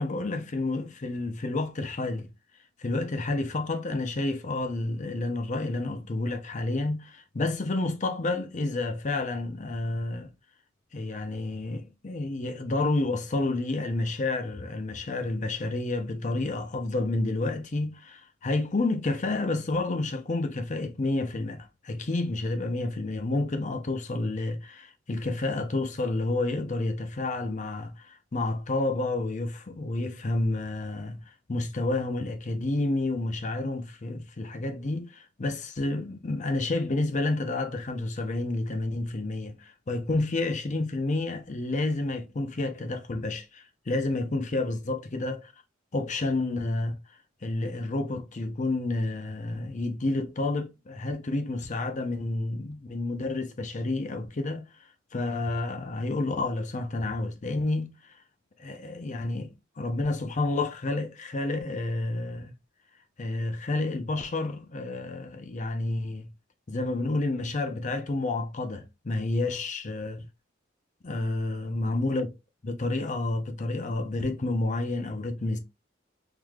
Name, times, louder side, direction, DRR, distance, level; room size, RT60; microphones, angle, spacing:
voice 1, 0.0-2.3 2.8-10.3 10.9-31.2 31.5-45.5 45.9-47.0 47.4-54.7 55.1-58.1 58.6-59.5 59.8-62.5 63.2-66.3 66.7-70.3 71.0-72.3 72.6-75.6, left 2 dB, 40° left, 0.6 m, -30 dB
3.7 x 3.1 x 2.3 m
head